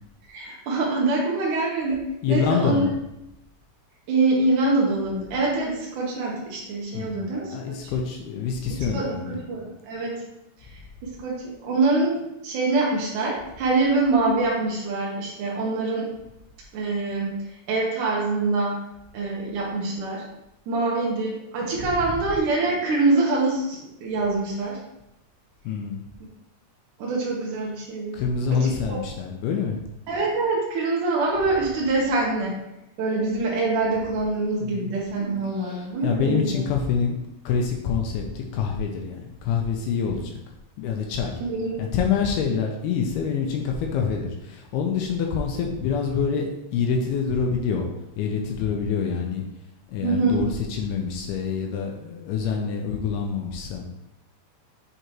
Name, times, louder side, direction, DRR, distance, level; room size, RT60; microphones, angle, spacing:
voice 1, 0.3-2.8 4.1-7.9 8.7-10.2 10.6-16.1 16.7-18.8 19.1-20.2 20.7-24.8 27.0-28.2 28.5-29.0 30.1-32.6 33.0-36.6 41.4-41.8 50.0-50.4, right 3 dB, 65° right, -4 dB, 2.1 m, -25 dB
voice 2, 2.2-2.9 6.9-9.4 21.8-22.3 25.6-26.0 28.1-29.8 34.6-34.9 35.5-37.2 37.5-40.4 40.8-41.4 41.8-47.9 48.2-49.4 49.9-53.9, left 6 dB, 80° left, 1 dB, 2.5 m, -26 dB
8.1 x 4.9 x 3.0 m, 0.87 s
omnidirectional pair, 4.8 m